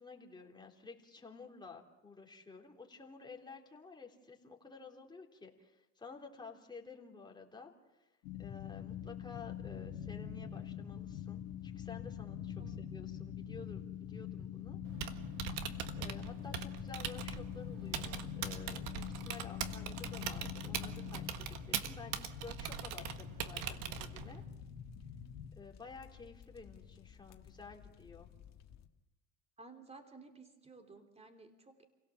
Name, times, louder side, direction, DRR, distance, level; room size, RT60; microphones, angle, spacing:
voice 1, 0.0-7.7 8.0-8.1 8.4-15.3 15.9-24.4 25.5-28.3, left 4 dB, 10° left, 1 dB, 3.5 m, -52 dB
sound 1, 8.2-25.5, left 9 dB, 75° left, 2.0 m, -44 dB
Typing, 14.8-24.4, right 10 dB, 60° right, 1.6 m, -42 dB
sound 2, 16.1-28.9, left 9 dB, 45° left, 1.8 m, -57 dB
voice 2, 29.6-31.8, right 3 dB, 15° right, 6 dB, 3.2 m, -55 dB
28.5 x 17.0 x 7.3 m, 1.0 s
supercardioid pair, 110°, 36 cm